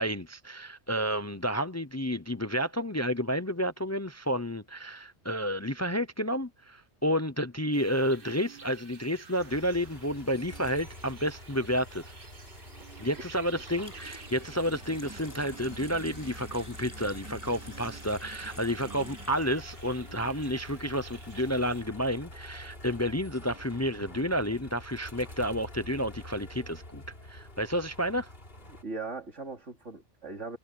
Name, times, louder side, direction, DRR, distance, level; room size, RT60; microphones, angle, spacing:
voice 1, 0.0-12.0 13.0-27.0 27.3-28.3, equal, 20° left, 0.6 m, -30 dB
sound 1, 7.7-21.8, right 5 dB, 50° right, 1.6 m, -52 dB
sound 2, 9.4-28.8, left 1 dB, 55° left, 3.8 m, -47 dB
Water tap faucet / Sink (filling or washing), 13.6-20.6, equal, 15° right, 7.2 m, -50 dB
voice 2, 18.8-19.2 28.7-30.6, right 3 dB, 90° right, 3.2 m, -40 dB
omnidirectional pair, 1.2 m